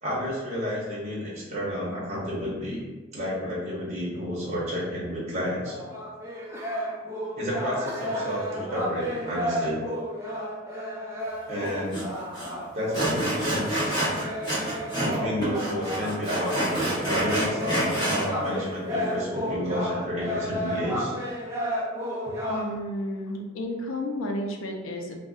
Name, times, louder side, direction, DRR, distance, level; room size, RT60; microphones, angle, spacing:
voice 1, 0.0-2.8 3.1-5.8 7.4-9.8 11.5-12.1 12.7-14.0 15.0-21.1, equal, 35° right, -6 dB, 0.8 m, -31 dB
sound 1, 5.6-22.7, equal, 15° right, 0.5 m, -32 dB
Sawing, 11.9-12.0 12.3-12.5 12.9-15.2 15.4-18.3, right 1 dB, 25° left, 1.1 m, -27 dB
voice 2, 22.5-25.2, left 1 dB, 80° left, 2 dB, 0.4 m, -32 dB
2.5 x 2.0 x 3.7 m, 1.2 s
head